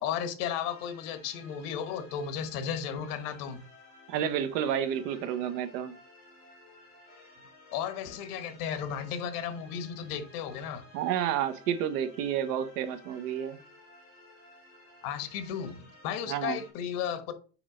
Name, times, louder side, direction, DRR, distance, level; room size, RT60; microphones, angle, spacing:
voice 1, 0.0-3.6 7.7-10.8 15.0-17.3, left 8 dB, 70° left, 1.2 m, -34 dB
sound 1, 0.5-16.7, left 2 dB, 25° left, 3.4 m, -55 dB
voice 2, 4.1-5.9 10.9-13.6 16.3-16.6, right 9 dB, 75° right, 1.1 m, -30 dB
6.2 x 4.7 x 3.8 m
cardioid pair, 180°, 47 cm